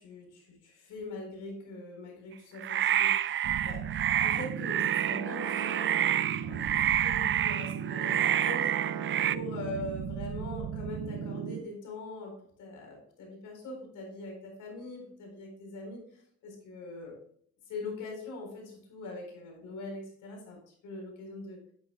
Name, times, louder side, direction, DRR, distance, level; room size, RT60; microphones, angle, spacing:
voice 1, 0.0-3.8 4.2-5.9 6.3-17.2 17.7-21.6, left 2 dB, 80° left, 1 dB, 4.2 m, -42 dB
sound 1, 2.6-9.4, right 10 dB, 40° right, 0.4 m, -28 dB
sound 2, 3.4-11.6, right 8 dB, 65° right, 0.8 m, -36 dB
11.5 x 8.6 x 2.3 m, 0.63 s
cardioid pair, 90°, 30 cm